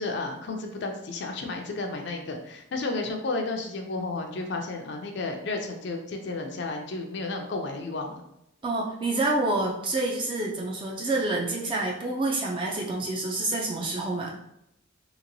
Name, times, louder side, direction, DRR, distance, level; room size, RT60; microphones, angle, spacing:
voice 1, 0.0-8.2, left 3 dB, 55° left, 3 dB, 0.4 m, -32 dB
voice 2, 8.6-14.3, right 2 dB, 25° right, -2 dB, 0.4 m, -28 dB
2.9 x 2.9 x 2.6 m, 0.80 s
head